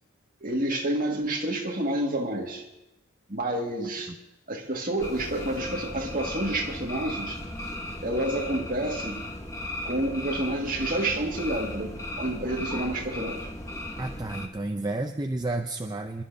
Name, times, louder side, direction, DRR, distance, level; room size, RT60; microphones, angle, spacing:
voice 1, 0.4-2.6 3.3-4.1 4.5-7.4 8.0-9.2 9.8-13.5, right 1 dB, 40° right, 0 dB, 1.9 m, -29 dB
sound 1, 5.0-14.5, left 1 dB, 15° left, 1.2 m, -36 dB
voice 2, 14.0-16.2, right 2 dB, 20° right, 4 dB, 0.5 m, -31 dB
27.0 x 12.0 x 2.7 m, 0.94 s
head